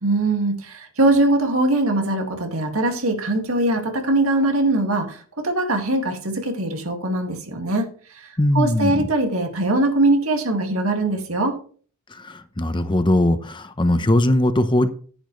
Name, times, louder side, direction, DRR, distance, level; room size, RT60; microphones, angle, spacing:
voice 1, 0.0-7.9 8.2-8.3 8.5-11.6, right 2 dB, 80° right, 4 dB, 2.1 m, -21 dB
voice 2, 8.4-9.1 12.1-14.9, left 1 dB, 25° left, 10 dB, 0.8 m, -20 dB
11.0 x 10.0 x 3.2 m, 0.43 s
head